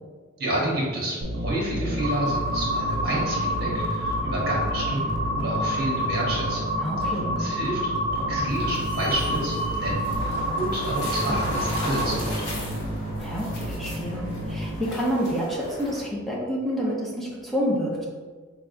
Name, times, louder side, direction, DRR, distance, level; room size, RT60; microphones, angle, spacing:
voice 1, 0.4-7.8 8.1-12.6, right 1 dB, 50° right, -5 dB, 1.3 m, -30 dB
sound 1, 1.2-14.8, equal, 90° right, 0.6 m, -32 dB
sound 2, 2.0-12.1, equal, 90° left, 0.9 m, -29 dB
voice 2, 6.8-7.4 13.2-18.1, equal, ahead, -5 dB, 0.6 m, -28 dB
sound 3, 8.5-16.0, equal, 55° left, 1.1 m, -36 dB
4.6 x 3.5 x 2.6 m, 1.5 s
head